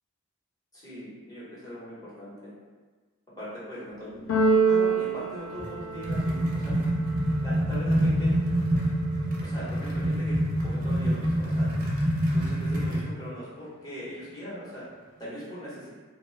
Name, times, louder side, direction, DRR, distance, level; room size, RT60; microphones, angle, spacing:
voice 1, 0.7-2.5 3.4-4.3 4.6-6.8 7.4-8.4 9.4-11.8 12.1-15.9, equal, 15° left, -10 dB, 0.9 m, -40 dB
Keyboard (musical), 4.3-6.4, right 3 dB, 85° left, 0.4 m, -24 dB
sound 1, 5.6-13.1, equal, 40° right, 0.5 m, -26 dB
2.6 x 2.1 x 3.1 m, 1.4 s
head